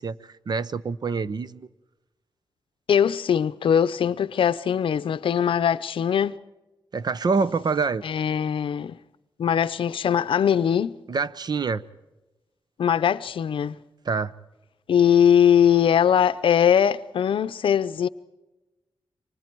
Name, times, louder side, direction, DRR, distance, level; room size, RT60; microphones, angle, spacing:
voice 1, 0.0-1.7 6.9-8.0 11.1-11.8 14.0-14.3, right 4 dB, 50° right, 0.7 m, -26 dB
voice 2, 2.9-6.4 8.0-9.0 9.4-10.9 12.8-13.8 14.9-18.1, left 8 dB, 75° left, 0.6 m, -21 dB
28.5 x 25.0 x 4.6 m
cardioid pair, 95°, 9 cm